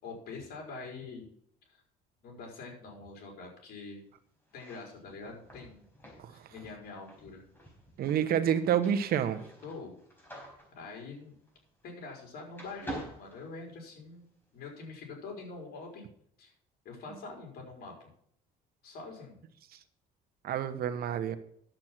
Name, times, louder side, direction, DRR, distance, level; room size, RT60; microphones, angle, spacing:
voice 1, 0.0-1.3 1.7-1.8 2.2-4.0 4.5-5.9 6.5-7.4 9.6-10.0 10.7-11.3 11.8-16.0 16.4-16.5 16.8-18.0 18.8-19.4, left 3 dB, 65° left, 1 dB, 4.5 m, -45 dB
sound 1, 4.4-12.2 12.5-14.2, right 1 dB, 10° left, 4.7 m, -48 dB
voice 2, 8.0-9.4 20.4-21.4, right 9 dB, 65° right, 11 dB, 1.1 m, -28 dB
10.5 x 7.8 x 6.0 m, 0.67 s
cardioid pair, 110°, 17 cm